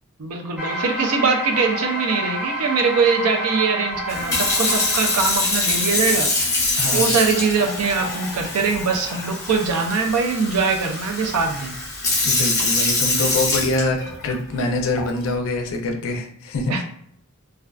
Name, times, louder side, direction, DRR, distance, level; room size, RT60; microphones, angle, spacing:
voice 1, 0.2-6.3 6.9-11.7 16.7-16.8, right 5 dB, 80° right, 4 dB, 0.4 m, -22 dB
sound 1, 0.6-6.5, right 1 dB, 5° right, 0.5 m, -29 dB
Sink (filling or washing) / Fill (with liquid), 4.1-14.3 15.0-15.3, left 2 dB, 15° left, 0.9 m, -24 dB
voice 2, 6.8-7.1 12.2-14.0 14.2-16.8, left 2 dB, 65° left, 3 dB, 0.4 m, -24 dB
2.4 x 2.3 x 2.2 m, 0.68 s
head